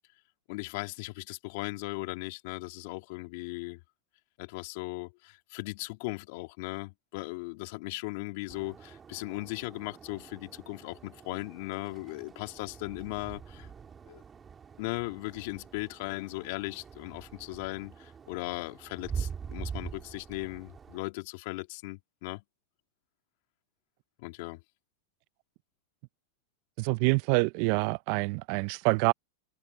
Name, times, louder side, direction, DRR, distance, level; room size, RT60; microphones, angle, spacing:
voice 1, 0.5-3.8 4.4-13.7 14.0-14.2 14.8-22.4 24.2-24.6, left 24 dB, 60° left, 2.9 m, -38 dB
sound 1, 8.5-21.0, right 6 dB, 20° right, 2.8 m, -44 dB
voice 2, 26.8-29.1, right 27 dB, 55° right, 0.7 m, -26 dB
hypercardioid pair, 110°, 0 cm